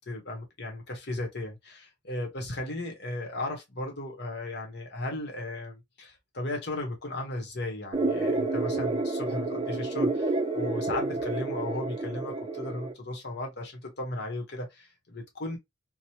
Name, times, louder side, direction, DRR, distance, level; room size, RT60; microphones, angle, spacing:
voice 1, 0.0-15.6, left 2 dB, 65° left, 1.0 m, -36 dB
sound 1, 7.9-12.9, right 3 dB, 30° right, 0.5 m, -29 dB
2.9 x 2.1 x 2.8 m
head